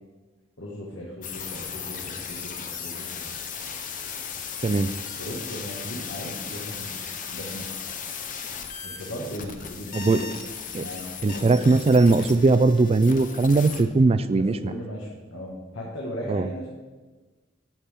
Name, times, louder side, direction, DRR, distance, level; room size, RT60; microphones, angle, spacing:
voice 1, 0.6-3.3 4.7-4.8 5.2-7.7 8.8-10.3 10.8-12.0 14.3-16.7, equal, 75° left, -4 dB, 1.5 m, -37 dB
sound 1, 1.2-13.9, left 6 dB, 40° left, 0.8 m, -36 dB
voice 2, 9.9-10.3 10.7-10.8 11.2-14.6 16.3-16.5, right 3 dB, 30° right, 13 dB, 0.3 m, -19 dB
10.5 x 7.5 x 3.6 m, 1.3 s
head